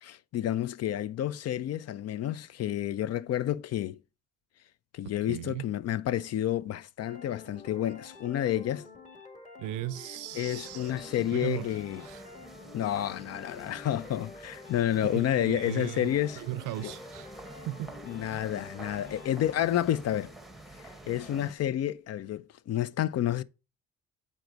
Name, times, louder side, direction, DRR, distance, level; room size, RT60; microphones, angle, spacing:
voice 1, 0.0-4.0 4.9-8.8 10.3-12.1 12.7-16.5 16.8-16.9 18.1-20.3 20.8-23.4, left 12 dB, 55° left, 0.5 m, -30 dB
voice 2, 5.3-5.7 9.6-10.9 11.2-11.7 12.0-12.3 15.0-17.4 17.7-17.9, right 14 dB, 85° right, 0.5 m, -37 dB
sound 1, 7.0-19.7, left 3 dB, 25° left, 1.8 m, -49 dB
sound 2, 10.3-21.5, right 1 dB, ahead, 0.9 m, -49 dB
7.2 x 4.6 x 3.9 m
cardioid pair, 90°, 30 cm